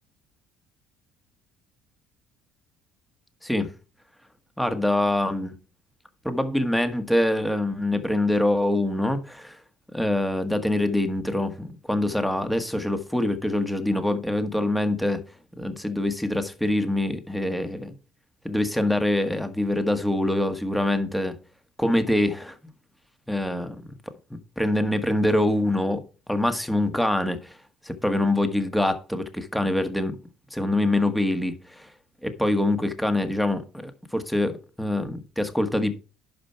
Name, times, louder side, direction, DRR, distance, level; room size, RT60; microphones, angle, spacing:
voice 1, 4.6-5.5 6.2-9.6 9.9-15.2 15.6-17.9 18.4-21.4 21.8-22.6 23.3-24.0 24.3-26.0 26.3-27.6 27.8-30.2 30.5-31.9 32.2-36.0, left 1 dB, 5° left, 1.6 m, -25 dB
11.0 x 5.3 x 4.5 m
supercardioid pair, 80°, 0 cm